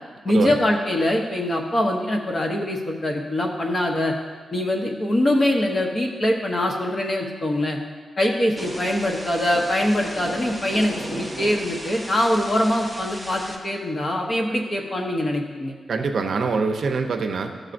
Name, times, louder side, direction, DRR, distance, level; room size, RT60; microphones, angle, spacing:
voice 1, 0.2-4.1 4.5-7.8 8.2-15.7, left 1 dB, 35° left, 1 dB, 0.9 m, -23 dB
Thunder / Rain, 8.6-13.6, right 1 dB, 5° left, 0.7 m, -35 dB
voice 2, 15.9-17.7, right 4 dB, 60° right, 5 dB, 0.6 m, -24 dB
13.5 x 6.4 x 2.5 m, 1.5 s
wide cardioid pair, 160°, 0 cm